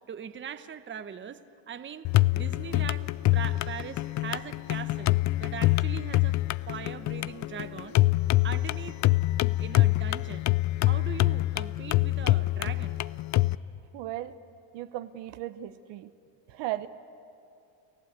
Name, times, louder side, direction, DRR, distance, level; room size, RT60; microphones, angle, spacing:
voice 1, 0.1-1.4 1.7-2.1 2.3-6.4 6.7-8.0 8.4-9.0 9.6-10.5 10.9-13.0, right 8 dB, 25° right, 10 dB, 1.0 m, -40 dB
sound 1, 2.0-13.5, left 18 dB, 40° left, 0.4 m, -25 dB
voice 2, 13.9-14.4 14.7-16.1 16.5-16.9, right 14 dB, 70° right, 11 dB, 1.1 m, -36 dB
29.5 x 15.5 x 8.3 m, 2.5 s
supercardioid pair, 100°, 45 cm